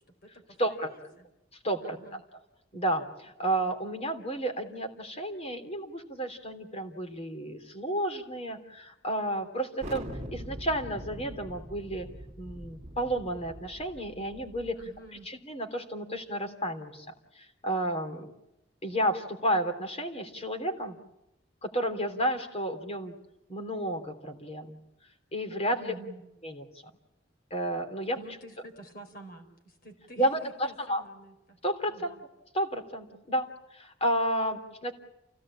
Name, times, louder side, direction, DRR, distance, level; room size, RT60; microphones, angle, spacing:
voice 1, 0.2-1.3 1.8-2.2 14.8-15.3 25.7-26.2 28.1-31.6 31.9-32.2, right 2 dB, 50° left, 6 dB, 4.6 m, -49 dB
voice 2, 1.6-2.0 2.7-12.1 12.4-14.7 15.2-17.1 17.3-18.3 18.8-21.0 21.6-23.1 23.5-24.8 25.3-25.9 26.4-26.6 27.5-28.2 30.2-31.0 31.6-32.1 32.5-34.9, right 1 dB, 35° left, 5 dB, 3.3 m, -31 dB
Thunder, 9.8-15.0, equal, 35° right, 2.1 m, -43 dB
28.5 x 17.5 x 8.8 m, 0.92 s
head